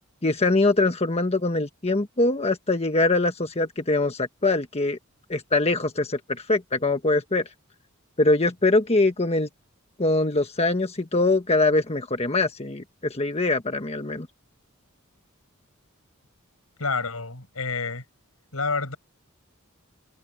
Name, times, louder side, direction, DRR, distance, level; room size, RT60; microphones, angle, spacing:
voice 1, 0.2-5.0 5.3-7.5 8.2-9.5 10.0-14.3, left 2 dB, 30° left, 1.3 m, -23 dB
voice 2, 16.8-18.0 18.5-19.0, left 4 dB, 85° left, 6.3 m, -28 dB
head